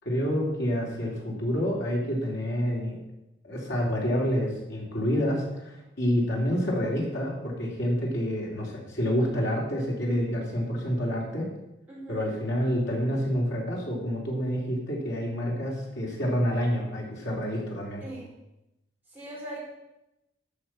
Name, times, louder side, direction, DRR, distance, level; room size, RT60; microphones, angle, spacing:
voice 1, 0.0-2.9 3.4-11.5 12.1-18.0, equal, 70° left, -2 dB, 3.4 m, -28 dB
voice 2, 11.9-12.3 18.0-18.3 19.1-19.7, right 1 dB, 10° right, -7 dB, 4.5 m, -40 dB
12.0 x 6.5 x 6.2 m, 0.92 s
head